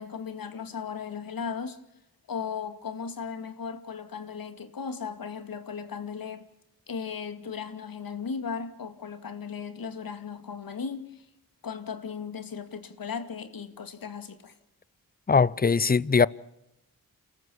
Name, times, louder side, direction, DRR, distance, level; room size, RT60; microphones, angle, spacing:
voice 1, 0.0-1.8 2.3-6.4 6.9-11.3 11.6-14.5, left 6 dB, 70° left, 2.3 m, -36 dB
voice 2, 15.3-16.3, left 5 dB, 25° left, 0.7 m, -21 dB
29.0 x 14.5 x 7.1 m
cardioid pair, 65°, 36 cm